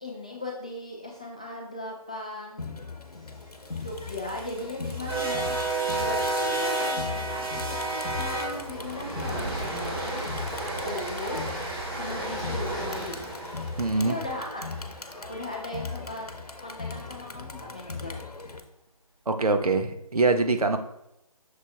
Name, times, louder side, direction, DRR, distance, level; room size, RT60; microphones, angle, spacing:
voice 1, 0.0-2.7 3.2-3.4 3.7-5.5 5.9-10.2 10.8-11.5 11.9-13.2 14.0-14.6 15.3-16.3 16.6-18.2, left 1 dB, 10° left, -3 dB, 0.3 m, -38 dB
Crowd, 2.6-18.6, left 4 dB, 85° left, 0.9 m, -39 dB
sound 1, 3.8-16.0, right 2 dB, 40° right, 1.7 m, -32 dB
voice 2, 13.8-14.1 19.3-20.8, right 3 dB, 75° right, 7 dB, 0.8 m, -24 dB
6.4 x 4.1 x 3.5 m, 0.85 s
figure-of-eight pair, 150°, 19 cm